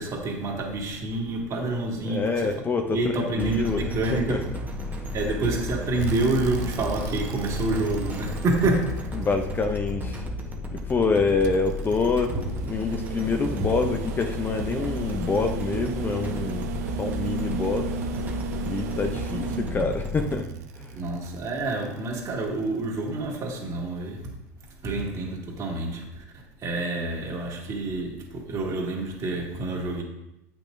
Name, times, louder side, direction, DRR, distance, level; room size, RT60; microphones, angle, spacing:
voice 1, 0.0-2.6 2.9-4.5 5.1-9.1 12.3-12.5 12.9-13.0 13.6-13.7 21.0-24.3 24.8-26.2 26.6-30.0, right 2 dB, 40° right, 2.1 m, -28 dB
voice 2, 2.0-3.8 4.1-4.4 9.2-10.2 10.9-12.3 12.6-16.7 17.0-17.9 18.7-20.5 20.8-21.0, left 4 dB, 25° left, 0.6 m, -26 dB
sound 1, 3.3-20.3, left 1 dB, 20° right, 1.2 m, -34 dB
sound 2, 6.0-10.2 11.4-22.6 24.2-24.3, right 6 dB, 75° right, 0.6 m, -35 dB
8.2 x 6.1 x 2.6 m
hypercardioid pair, 100°, 9 cm